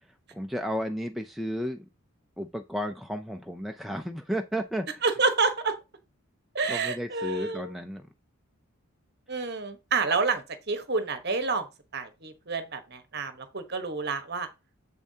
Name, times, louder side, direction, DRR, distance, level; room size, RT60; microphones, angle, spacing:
voice 1, 0.3-1.9 2.4-5.0 6.7-8.0, equal, ahead, 0.4 m, -33 dB
voice 2, 5.0-5.8 6.5-7.7 9.3-11.6 11.9-14.5, right 4 dB, 50° right, 1.1 m, -28 dB
7.4 x 6.9 x 2.8 m
head